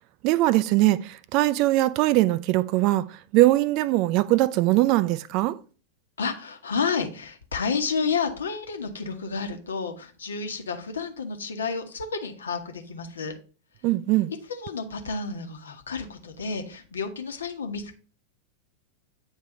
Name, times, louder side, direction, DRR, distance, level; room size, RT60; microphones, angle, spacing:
voice 1, 0.2-5.6 13.8-14.3, right 17 dB, 40° right, 0.4 m, -21 dB
voice 2, 6.2-13.3 14.5-17.9, left 5 dB, 70° left, 1.1 m, -30 dB
9.0 x 3.3 x 4.7 m
figure-of-eight pair, 90°, 0 cm